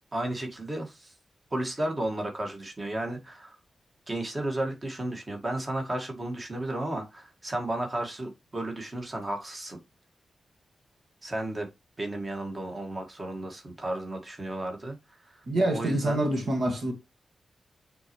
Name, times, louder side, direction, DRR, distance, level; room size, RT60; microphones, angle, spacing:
voice 1, 0.1-1.2 1.5-3.6 4.1-9.8 11.2-11.7 12.0-16.2, right 1 dB, 25° right, 2.0 m, -33 dB
voice 2, 15.5-16.9, right 1 dB, 60° right, 1.8 m, -26 dB
8.6 x 4.2 x 3.1 m
wide cardioid pair, 130°, 0 cm